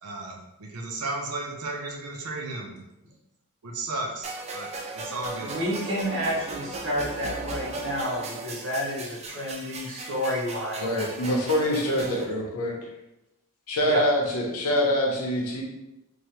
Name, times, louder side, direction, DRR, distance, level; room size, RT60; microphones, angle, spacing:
voice 1, 0.0-2.8 3.6-5.6, right 2 dB, 85° right, 1 dB, 0.5 m, -34 dB
sound 1, 4.2-12.2, right 2 dB, 30° right, 0.3 m, -37 dB
voice 2, 5.4-10.8 13.8-14.0, equal, 60° right, -5 dB, 1.0 m, -30 dB
voice 3, 10.8-12.8 13.7-15.6, equal, 70° left, -1 dB, 0.8 m, -25 dB
3.1 x 2.2 x 2.9 m, 0.93 s
head